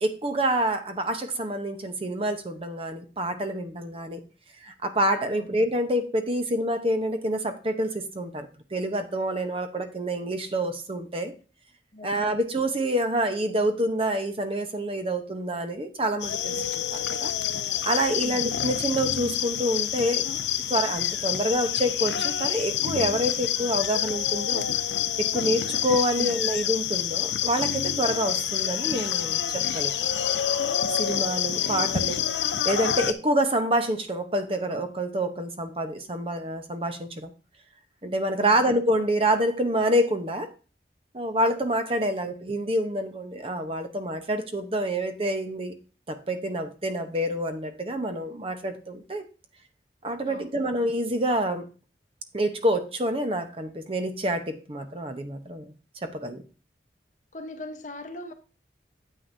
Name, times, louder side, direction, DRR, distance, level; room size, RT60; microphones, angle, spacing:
voice 1, 0.0-4.2 4.6-11.3 12.0-17.3 17.8-20.3 20.7-24.7 25.2-29.9 30.9-32.2 32.6-37.3 38.0-40.5 41.1-45.7 46.1-49.2 50.0-51.7 52.3-55.7 56.0-56.4, right 1 dB, 30° right, 0.9 m, -27 dB
voice 2, 11.9-12.2 18.2-18.4 26.1-26.3 38.4-38.7 50.3-50.5 57.3-58.3, left 1 dB, 45° left, 1.0 m, -39 dB
sound 1, 16.2-33.1, left 9 dB, 80° left, 0.7 m, -27 dB
9.3 x 8.4 x 2.7 m
head